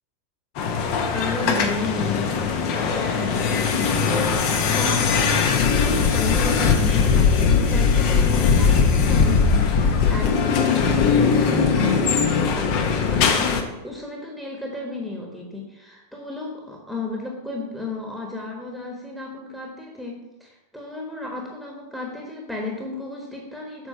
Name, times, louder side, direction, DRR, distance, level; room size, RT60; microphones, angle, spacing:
sound 1, 0.6-13.6, left 5 dB, 45° left, 0.9 m, -20 dB
voice 1, 1.1-23.9, left 3 dB, ahead, -1 dB, 1.3 m, -33 dB
7.4 x 4.3 x 5.6 m, 0.98 s
figure-of-eight pair, 90°, 0 cm